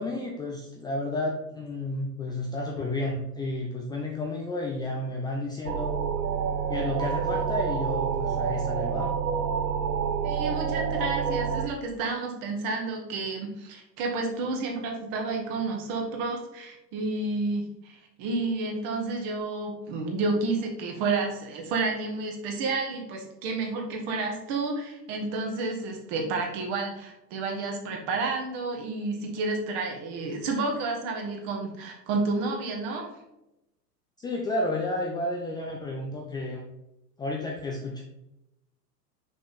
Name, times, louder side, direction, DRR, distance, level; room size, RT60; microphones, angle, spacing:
voice 1, 0.0-6.0 6.7-9.1 34.2-36.6 37.2-38.0, left 2 dB, 10° left, -1 dB, 0.5 m, -31 dB
sound 1, 5.7-11.7, right 7 dB, 75° right, 0.8 m, -28 dB
voice 2, 10.2-33.1, right 3 dB, 45° right, 1 dB, 2.0 m, -30 dB
6.1 x 5.4 x 4.1 m, 0.90 s
figure-of-eight pair, 95°, 50 cm